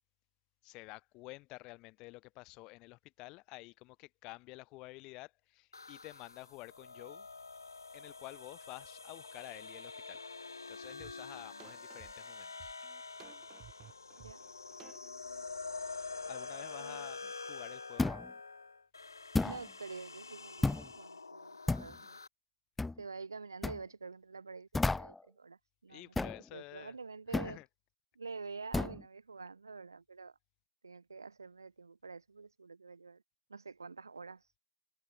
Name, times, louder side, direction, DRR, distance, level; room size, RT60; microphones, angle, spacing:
voice 1, 0.6-7.3 7.9-10.2 10.7-12.7 16.3-18.1 25.9-26.9 27.3-27.7, left 23 dB, 25° left, 4.3 m, -50 dB
sound 1, 5.7-22.3, left 4 dB, 70° left, 0.5 m, -47 dB
sound 2, 11.0-11.1 11.6-15.2, right 12 dB, 20° right, 2.9 m, -56 dB
voice 2, 15.0-15.4 16.8-17.1 19.4-22.2 23.0-27.6 28.2-30.4 30.8-33.2 33.5-34.4, right 4 dB, 70° right, 0.9 m, -48 dB
sound 3, 18.0-18.3 19.3-19.6 20.6-20.9 21.7-22.0 22.8-23.0 23.6-23.8 24.7-25.2 26.2-26.4 27.3-27.6 28.7-29.0, left 3 dB, 5° left, 0.3 m, -32 dB
figure-of-eight pair, 125°, 2 cm